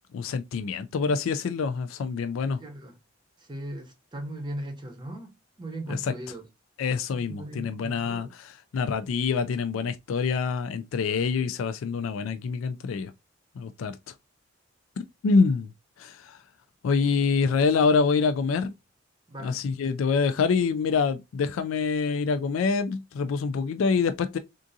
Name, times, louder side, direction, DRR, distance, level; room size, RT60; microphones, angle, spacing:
voice 1, 0.1-2.6 5.9-6.1 6.8-13.1 13.6-14.0 15.2-15.7 16.0-16.4 16.8-18.7 19.4-24.4, left 5 dB, 85° left, 0.3 m, -26 dB
voice 2, 2.5-3.0 3.4-6.4 7.1-8.3 19.3-19.6, right 1 dB, 25° right, 0.6 m, -38 dB
3.6 x 2.4 x 2.6 m
head